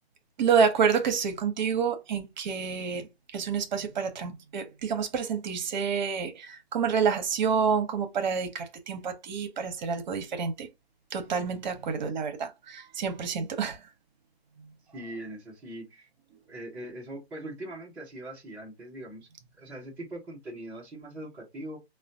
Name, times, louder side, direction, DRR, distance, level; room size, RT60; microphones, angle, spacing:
voice 1, 0.4-3.1 3.3-10.7 11.1-13.8, right 6 dB, 45° right, 0.8 m, -28 dB
voice 2, 14.9-16.1 16.5-19.3 19.6-21.8, right 1 dB, 5° right, 0.5 m, -41 dB
4.8 x 2.2 x 2.6 m
figure-of-eight pair, 130°, 32 cm